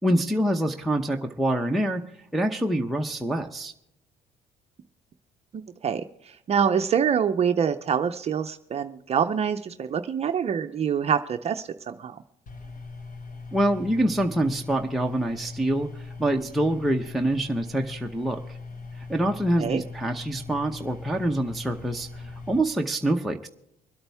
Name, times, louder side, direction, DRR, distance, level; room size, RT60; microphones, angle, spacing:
voice 1, 0.0-2.0 2.3-3.7 13.5-18.6 19.0-23.5, right 1 dB, ahead, 1 dB, 0.8 m, -26 dB
voice 2, 5.5-12.2 19.6-19.8, right 7 dB, 40° right, 7 dB, 0.6 m, -26 dB
sound 1, 12.5-22.6, left 3 dB, 50° left, 2.2 m, -40 dB
25.0 x 8.7 x 3.5 m, 0.80 s
cardioid pair, 110°, 17 cm